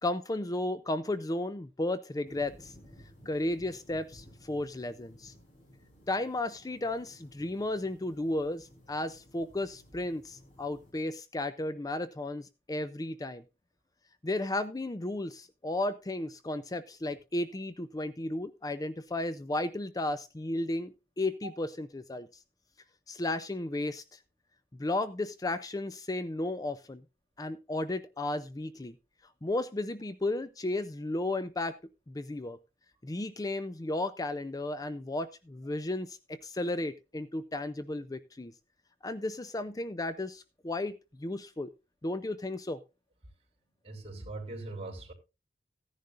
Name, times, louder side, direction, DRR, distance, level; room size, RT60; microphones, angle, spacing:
voice 1, 0.0-2.7 3.3-5.3 6.1-13.4 14.2-22.3 23.1-24.2 24.8-27.0 27.4-28.9 29.4-31.8 32.1-32.6 33.0-38.5 39.0-41.7 42.0-42.8, left 2 dB, 20° left, 0.5 m, -34 dB
sound 1, 2.2-10.9, equal, 45° left, 5.2 m, -56 dB
voice 2, 43.8-45.1, right 2 dB, 35° right, 3.8 m, -41 dB
15.5 x 10.5 x 2.5 m
head